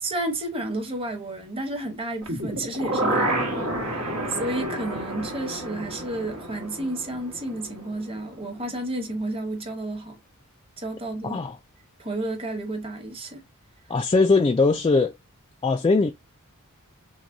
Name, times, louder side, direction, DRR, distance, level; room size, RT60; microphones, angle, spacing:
voice 1, 0.0-10.2 10.8-11.4 12.0-13.4, right 1 dB, 25° right, 1.0 m, -31 dB
sound 1, 2.2-8.2 8.6-8.7, right 1 dB, 85° right, 1.3 m, -30 dB
voice 2, 11.2-11.6 13.9-15.1 15.6-16.1, left 3 dB, 20° left, 0.3 m, -20 dB
6.0 x 2.1 x 2.7 m
head